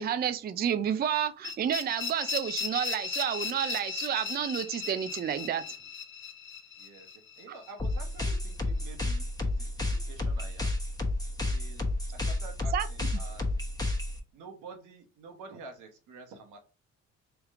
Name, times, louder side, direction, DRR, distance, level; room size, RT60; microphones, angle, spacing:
voice 1, 0.0-5.6 12.7-12.9, right 9 dB, 35° right, 0.4 m, -30 dB
sound 1, 1.4-8.3, left 5 dB, 40° left, 1.0 m, -37 dB
voice 2, 6.8-10.8 11.3-11.9 12.1-13.7 14.3-16.6, right 4 dB, 90° right, 1.1 m, -49 dB
sound 2, 7.8-14.2, left 2 dB, 10° left, 1.0 m, -31 dB
3.4 x 3.0 x 3.5 m
cardioid pair, 90°, 30 cm